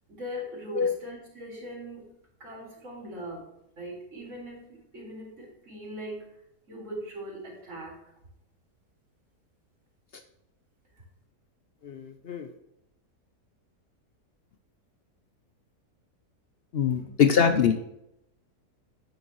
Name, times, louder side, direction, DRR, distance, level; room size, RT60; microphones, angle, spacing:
voice 1, 0.1-2.1 2.4-3.5 3.8-6.3 6.7-8.0 11.0-11.1 16.9-17.1, equal, 50° right, -1 dB, 2.6 m, -40 dB
voice 2, 11.8-12.5 16.7-17.7, left 7 dB, 60° left, 7 dB, 0.6 m, -23 dB
10.0 x 8.2 x 3.1 m, 0.81 s
omnidirectional pair, 1.7 m